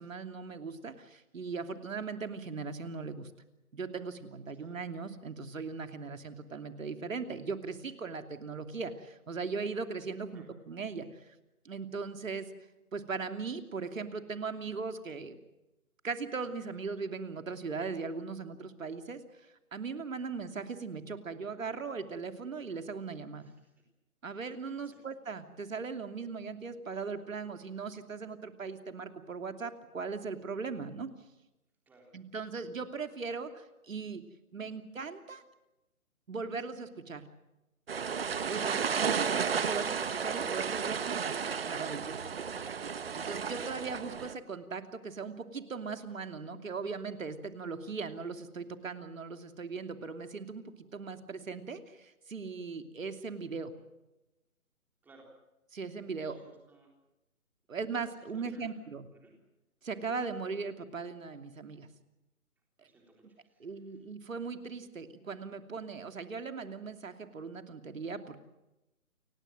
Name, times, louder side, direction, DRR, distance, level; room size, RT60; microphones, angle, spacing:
voice 1, 0.0-3.3 3.7-11.4 11.6-12.5 12.9-15.4 16.0-23.5 24.2-31.1 32.1-34.2 34.5-35.4 36.3-37.2 38.4-42.3 43.1-53.7 55.7-56.4 57.7-59.0 59.8-61.9 63.6-68.4, right 4 dB, 65° right, 7 dB, 2.9 m, -39 dB
voice 2, 23.4-23.8 24.9-25.0 31.9-32.1 55.0-55.3 56.2-57.0 58.2-58.8 59.2-59.4 62.8-64.0, right 2 dB, 5° right, 0 dB, 3.7 m, -59 dB
sound 1, 37.9-44.3, right 6 dB, 40° right, 1.3 m, -33 dB
29.0 x 17.0 x 7.8 m, 0.96 s
hypercardioid pair, 160°, 43 cm